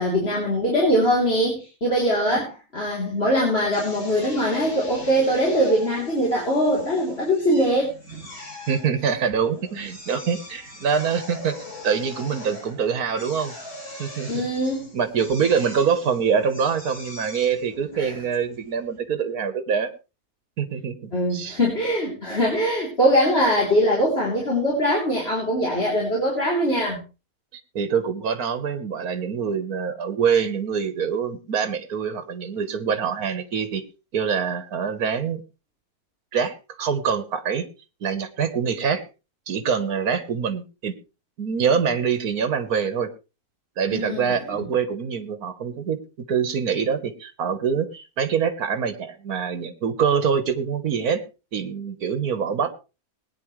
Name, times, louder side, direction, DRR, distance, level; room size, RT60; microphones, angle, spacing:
voice 1, 0.0-7.9 9.7-9.8 14.3-14.9 17.9-18.1 21.1-27.0 43.9-44.7, equal, 40° left, -3 dB, 3.7 m, -22 dB
Drill, 3.7-19.0, left 2 dB, 80° left, 5.6 m, -41 dB
voice 2, 8.7-11.6 11.8-13.5 14.0-14.5 14.9-19.9 20.6-21.6 27.8-33.8 34.1-35.4 36.3-37.7 38.0-39.0 39.5-40.9 41.4-43.1 43.8-46.0 46.3-51.2 51.5-52.7, right 6 dB, 80° right, 10 dB, 1.8 m, -25 dB
21.0 x 9.7 x 3.2 m, 0.31 s
omnidirectional pair, 1.6 m